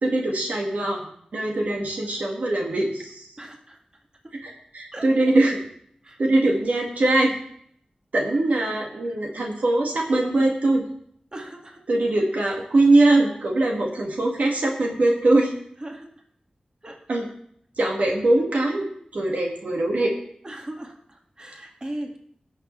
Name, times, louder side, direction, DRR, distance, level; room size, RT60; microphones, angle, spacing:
voice 1, 0.0-3.3 4.4-5.6 6.2-7.3 8.1-10.8 11.9-15.5 17.1-17.3 17.8-18.9 19.1-20.1, right 2 dB, 85° right, -1 dB, 1.9 m, -22 dB
voice 2, 3.4-3.8 4.2-4.3 4.9-5.1 6.0-6.2 11.3-11.8 15.8-16.1 16.8-17.0 20.4-22.2, right 1 dB, 35° right, 1 dB, 1.9 m, -38 dB
17.0 x 6.7 x 3.2 m, 0.66 s
cardioid pair, 50°, 3 cm